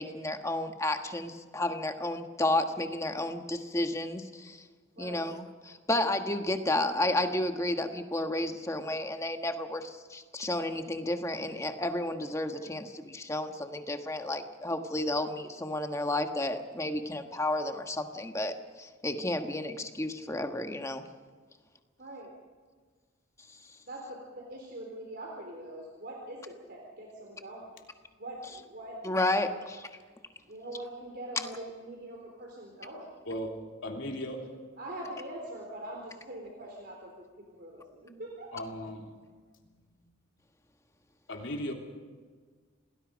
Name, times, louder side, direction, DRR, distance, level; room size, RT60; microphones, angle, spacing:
voice 1, 0.0-4.6 5.0-18.5 18.8-21.0 29.0-29.8, left 1 dB, 15° left, 6 dB, 1.4 m, -32 dB
voice 2, 22.0-22.3 23.8-27.7 28.2-29.0 29.5-29.6 30.5-33.2 34.8-38.5, right 1 dB, 55° right, 0 dB, 3.8 m, -43 dB
voice 3, 33.8-34.5 38.5-39.1 41.3-41.7, equal, 75° left, 1 dB, 3.3 m, -36 dB
27.5 x 19.5 x 5.3 m, 1.5 s
head